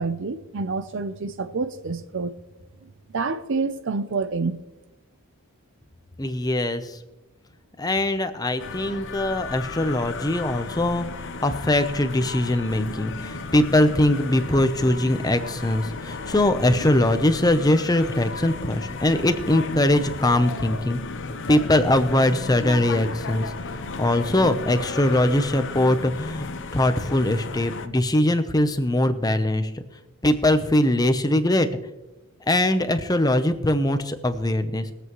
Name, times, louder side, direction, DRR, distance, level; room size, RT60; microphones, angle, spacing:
voice 1, 0.0-2.4 3.1-4.6, right 4 dB, 55° right, 0.6 m, -27 dB
voice 2, 6.2-7.0 7.8-11.1 11.4-21.0 21.5-29.8 30.2-31.7 32.5-34.9, left 1 dB, 15° left, 0.7 m, -22 dB
sound 1, 8.6-27.9, left 3 dB, 55° left, 0.7 m, -34 dB
21.5 x 8.0 x 3.1 m
head